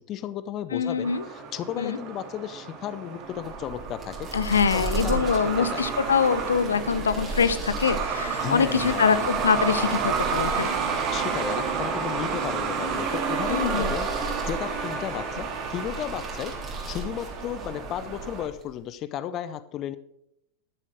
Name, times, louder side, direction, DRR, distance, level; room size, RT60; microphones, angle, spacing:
voice 1, 0.1-1.1 1.5-4.0 4.7-5.3 5.6-5.8 8.4-9.1 11.1-14.1 14.5-15.5 15.7-16.5 16.9-18.8 19.1-20.0, left 10 dB, 35° left, 15 dB, 0.6 m, -33 dB
voice 2, 0.7-1.3 1.8-2.0 4.3-10.7 13.5-13.9, left 6 dB, 70° left, 13 dB, 0.7 m, -24 dB
Truck, 1.0-18.5, right 6 dB, 35° right, 2.2 m, -31 dB
sound 1, 3.3-18.8, right 3 dB, 20° right, 3.7 m, -37 dB
12.0 x 7.5 x 6.5 m, 0.78 s
figure-of-eight pair, 90°, 0 cm